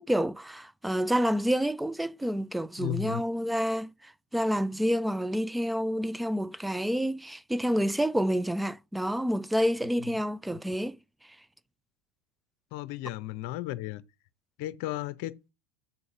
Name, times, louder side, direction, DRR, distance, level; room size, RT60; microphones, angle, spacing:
voice 1, 0.0-11.0, equal, 5° right, 0.3 m, -28 dB
voice 2, 2.8-3.2 12.7-14.0 14.6-15.5, left 15 dB, 60° left, 0.7 m, -34 dB
8.6 x 4.0 x 3.7 m
hypercardioid pair, 95°, 0 cm